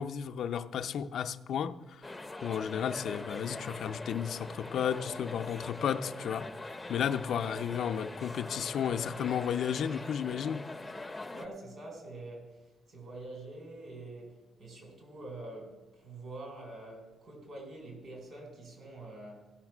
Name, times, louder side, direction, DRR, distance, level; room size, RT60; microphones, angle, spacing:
voice 1, 0.0-2.1 2.4-6.5 6.9-10.6, left 8 dB, 65° left, 0.5 m, -33 dB
sound 1, 2.0-11.5, left 2 dB, 15° left, 0.6 m, -42 dB
voice 2, 7.4-7.9 11.3-19.5, right 2 dB, 60° right, 4.3 m, -46 dB
15.0 x 5.8 x 6.0 m
cardioid pair, 90°, 0 cm